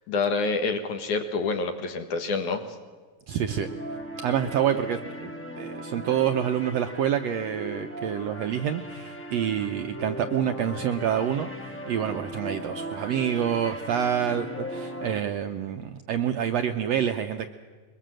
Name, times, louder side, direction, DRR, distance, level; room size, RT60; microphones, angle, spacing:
voice 1, 0.1-2.6, left 4 dB, 70° left, 7 dB, 2.9 m, -27 dB
voice 2, 3.3-3.7 4.2-5.3 5.6-17.5, right 9 dB, 75° right, 7 dB, 1.6 m, -27 dB
sound 1, 3.5-15.2, right 1 dB, 15° left, 0.4 m, -38 dB
22.5 x 21.0 x 7.6 m, 1.5 s
omnidirectional pair, 3.8 m